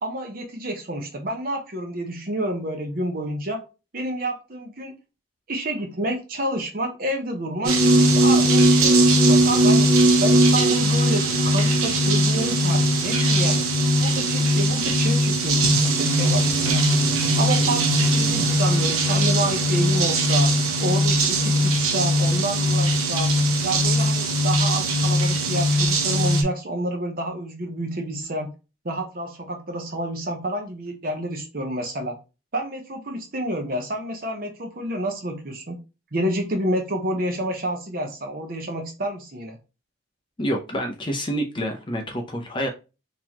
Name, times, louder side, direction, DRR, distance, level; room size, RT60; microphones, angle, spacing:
voice 1, 0.0-3.6 3.9-4.9 5.5-9.9 10.2-13.6 14.0-16.8 17.4-20.5 20.8-23.3 23.6-28.5 28.8-32.2 32.5-35.8 36.1-39.6, right 1 dB, 45° right, 4 dB, 0.8 m, -29 dB
sound 1, 7.6-26.4, right 1 dB, 85° right, 0.8 m, -19 dB
voice 2, 40.4-42.7, equal, 25° left, 3 dB, 0.6 m, -27 dB
3.9 x 2.9 x 3.0 m, 0.29 s
head